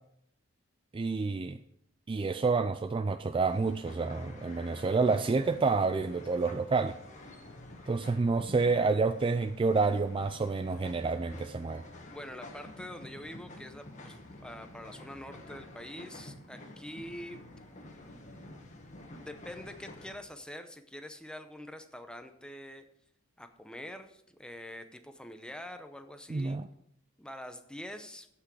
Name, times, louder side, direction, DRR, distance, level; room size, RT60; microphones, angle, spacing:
voice 1, 0.9-1.6 2.1-6.9 7.9-11.8 26.3-26.7, right 4 dB, 25° right, 10 dB, 0.3 m, -29 dB
sound 1, 3.5-20.2, left 1 dB, 35° left, 1.6 m, -49 dB
voice 2, 12.1-17.4 19.2-22.8 23.4-26.6 27.2-28.3, left 1 dB, 5° left, 8 dB, 0.7 m, -45 dB
15.0 x 6.0 x 4.7 m, 0.74 s
head